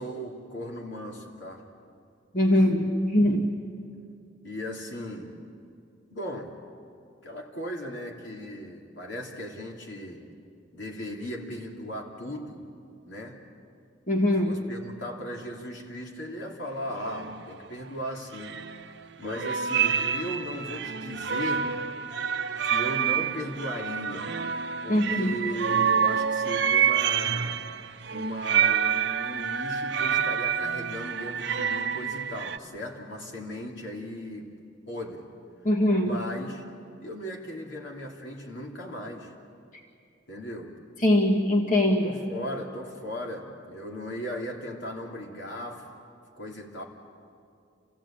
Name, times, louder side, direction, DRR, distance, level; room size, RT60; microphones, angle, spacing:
voice 1, 0.0-1.7 2.5-2.6 4.4-5.3 6.1-6.5 7.2-10.2 10.7-12.6 13.1-13.4 14.4-21.7 22.6-24.3 24.8-27.6 28.1-34.5 34.9-35.2 36.0-36.6 37.0-39.3 40.3-40.7 42.0-45.9 46.4-46.8, equal, 80° left, 0 dB, 3.1 m, -37 dB
voice 2, 2.3-3.5 14.1-14.6 24.9-25.4 35.6-36.2 41.0-42.1, left 1 dB, 45° left, 0 dB, 1.8 m, -22 dB
sound 1, 16.7-16.8 17.0-17.4 18.3-19.1 19.3-32.6, right 7 dB, 65° right, 0.7 m, -28 dB
27.5 x 16.0 x 8.8 m, 2.4 s
head